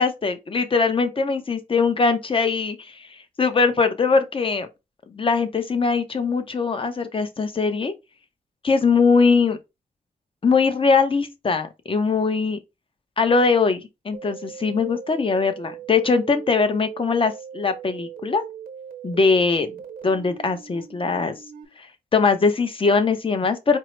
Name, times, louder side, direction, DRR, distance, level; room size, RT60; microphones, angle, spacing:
voice 1, 0.0-2.9 3.4-4.7 5.1-7.9 8.6-9.6 10.4-12.6 13.2-18.4 19.0-19.7 20.0-21.3 22.1-23.8, left 4 dB, 35° left, 0.7 m, -21 dB
sound 1, 14.1-21.7, right 8 dB, 70° right, 1.0 m, -40 dB
4.5 x 2.0 x 4.4 m
wide cardioid pair, 95°, 15 cm